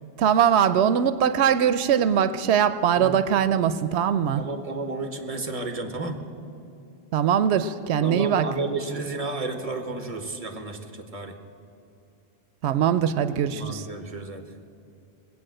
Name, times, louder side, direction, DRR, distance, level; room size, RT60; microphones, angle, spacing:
voice 1, 0.2-4.4 7.1-8.5 12.6-13.9, right 8 dB, 85° right, 13 dB, 0.8 m, -21 dB
voice 2, 4.4-6.2 8.0-11.3 13.5-14.4, right 3 dB, 35° right, 6 dB, 1.4 m, -32 dB
20.0 x 8.4 x 7.7 m, 2.6 s
omnidirectional pair, 1.1 m